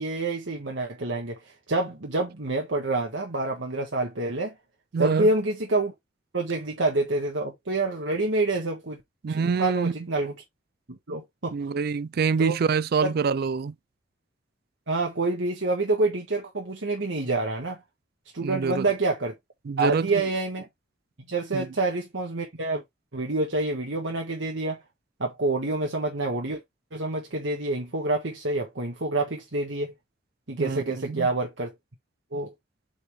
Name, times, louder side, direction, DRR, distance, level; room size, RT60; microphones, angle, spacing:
voice 1, 0.0-4.5 5.0-5.9 6.3-9.0 9.4-10.3 10.9-11.6 12.4-12.6 13.0-13.1 14.9-17.8 18.3-19.3 19.8-20.7 21.3-22.8 23.1-24.8 25.2-26.6 26.9-29.9 30.5-31.7 32.3-32.5, right 2 dB, 80° right, 1.5 m, -27 dB
voice 2, 4.9-5.3 9.2-9.9 11.5-13.7 18.4-18.9 19.7-20.1 21.5-21.7 30.6-31.3, right 5 dB, 55° right, 0.4 m, -26 dB
7.9 x 4.1 x 3.4 m
head